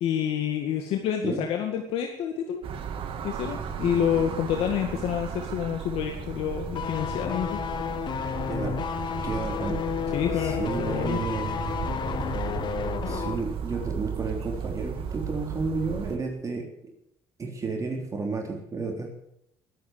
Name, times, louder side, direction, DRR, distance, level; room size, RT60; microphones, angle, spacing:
voice 1, 0.0-2.6 3.2-7.6 10.1-11.2, left 9 dB, 80° left, 3 dB, 2.0 m, -28 dB
sound 1, 2.6-16.2, right 6 dB, 65° right, 2.1 m, -35 dB
sound 2, 6.8-13.4 13.7-13.9, left 7 dB, 50° left, 1.7 m, -31 dB
voice 2, 9.2-9.8 10.3-11.8 13.1-16.7 17.4-19.1, right 4 dB, 35° right, 1 dB, 3.6 m, -32 dB
19.5 x 8.7 x 8.2 m, 0.76 s
cardioid pair, 95°, 10 cm